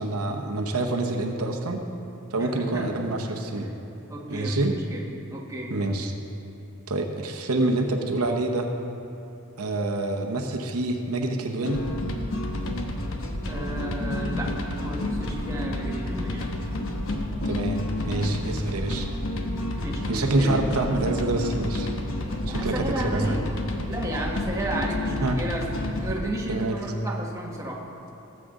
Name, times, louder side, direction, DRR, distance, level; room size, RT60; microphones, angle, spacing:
voice 1, 0.0-1.8 2.3-3.7 4.3-4.7 5.7-6.1 6.9-8.7 9.6-11.8 17.4-19.1 20.1-21.9 22.5-23.4 25.2-25.4 26.5-26.7, right 2 dB, 85° right, 2 dB, 0.9 m, -26 dB
voice 2, 2.4-2.9 3.6-3.7 4.1-5.1 5.3-5.8 13.5-16.5 19.8-20.7 22.5-23.5 23.8-27.8, right 1 dB, 15° right, -3 dB, 1.3 m, -33 dB
sound 1, 11.6-26.2, left 1 dB, 65° left, 1.0 m, -30 dB
18.5 x 7.6 x 3.7 m, 2.9 s
head